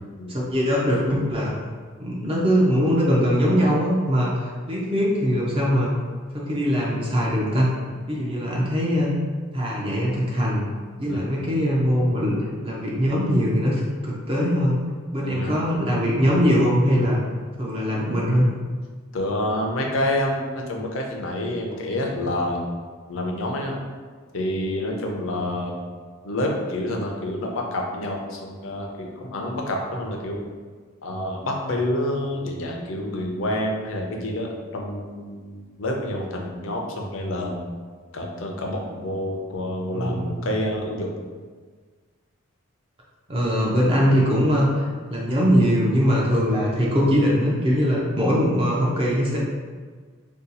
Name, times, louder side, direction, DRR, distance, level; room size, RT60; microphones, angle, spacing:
voice 1, 0.3-1.5 2.0-5.9 6.3-7.7 8.1-9.1 9.5-10.7 11.0-12.4 12.6-14.8 15.1-17.2 17.6-18.5 39.9-40.2 43.3-49.4, equal, 25° right, -4 dB, 0.5 m, -21 dB
voice 2, 15.2-15.5 19.1-22.7 23.1-23.8 24.3-25.8 26.2-30.4 31.0-37.6 38.1-41.1, left 1 dB, 65° left, 0 dB, 0.5 m, -28 dB
2.7 x 2.3 x 3.9 m, 1.5 s
head